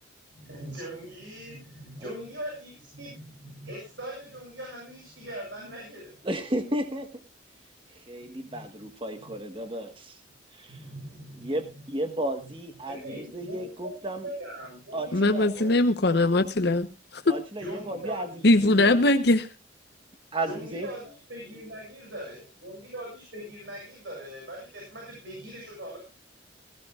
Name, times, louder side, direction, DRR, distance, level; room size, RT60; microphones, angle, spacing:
voice 1, 0.4-6.4 8.5-8.6 10.7-11.5 12.9-13.9 14.2-15.7 17.6-18.4 20.4-26.0, equal, 65° right, 7.2 m, -41 dB
voice 2, 6.2-7.1 7.9-10.2 10.5-10.8 11.4-14.3 14.9-15.5 17.3-18.3 18.6-19.1 20.3-20.9, right 1 dB, 25° right, 1.3 m, -33 dB
voice 3, 15.1-16.9 17.1-17.3 18.4-19.5, left 2 dB, 55° left, 0.9 m, -21 dB
17.0 x 16.0 x 2.4 m
head